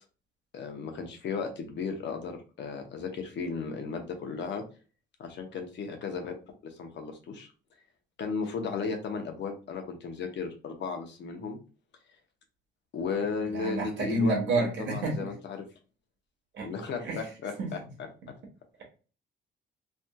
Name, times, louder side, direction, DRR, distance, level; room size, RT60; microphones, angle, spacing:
voice 1, 0.5-4.6 5.2-6.3 6.6-7.5 8.2-11.6 12.9-15.7 16.6-17.8, left 5 dB, 65° left, 4 dB, 0.8 m, -35 dB
voice 2, 13.5-15.3 16.5-16.7 17.0-17.2 17.6-17.7, right 2 dB, 65° right, -1 dB, 1.3 m, -29 dB
3.3 x 2.7 x 2.2 m, 0.35 s
cardioid pair, 90°, 20 cm